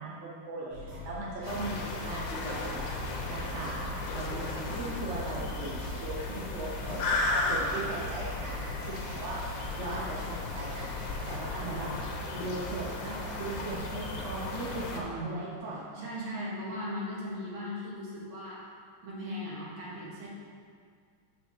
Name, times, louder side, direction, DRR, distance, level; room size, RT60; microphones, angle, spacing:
voice 1, 0.0-2.9 3.3-9.4 9.8-10.9 11.3-11.9 12.3-16.5, right 2 dB, 55° right, -5 dB, 0.8 m, -39 dB
sound 1, 0.7-11.9, left 4 dB, 90° right, 3.3 m, -43 dB
sound 2, 1.5-15.0, left 2 dB, 70° left, 1.7 m, -35 dB
voice 2, 11.6-11.9 14.9-15.5 15.9-18.6 19.0-20.3, equal, 75° right, -7 dB, 2.6 m, -38 dB
6.4 x 4.8 x 6.4 m, 2.1 s
omnidirectional pair, 2.3 m